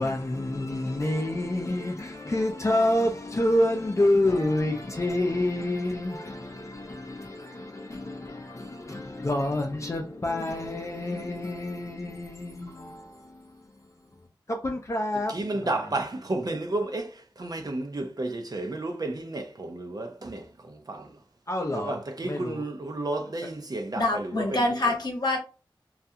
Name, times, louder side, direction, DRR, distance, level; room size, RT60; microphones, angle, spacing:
voice 1, 0.0-13.6 14.5-15.9 21.5-22.0 22.2-22.6, left 1 dB, 35° left, 0.4 m, -28 dB
voice 2, 15.3-21.1 21.7-24.6, right 2 dB, 50° right, 0.5 m, -32 dB
voice 3, 23.9-25.4, left 2 dB, 50° left, 0.9 m, -26 dB
2.4 x 2.2 x 2.7 m
wide cardioid pair, 55°, 9 cm